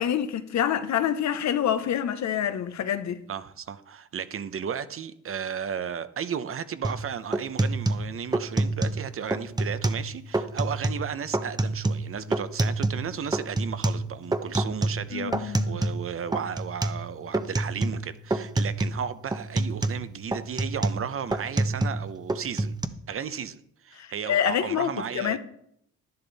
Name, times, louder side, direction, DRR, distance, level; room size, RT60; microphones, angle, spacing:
voice 1, 0.0-3.2 15.1-15.8 24.0-25.4, left 9 dB, 65° left, 1.0 m, -27 dB
voice 2, 3.3-22.7 23.1-25.4, right 7 dB, 45° right, 0.8 m, -34 dB
sound 1, 6.8-7.0 7.3-9.0 9.3-10.1 10.3-11.0 11.3-13.1 13.3-16.1 16.3-17.0 17.3-18.1 18.3-19.0 19.3-22.0 22.3-22.9, right 2 dB, 15° right, 0.9 m, -27 dB
11.0 x 10.5 x 4.1 m
cardioid pair, 90°, 30 cm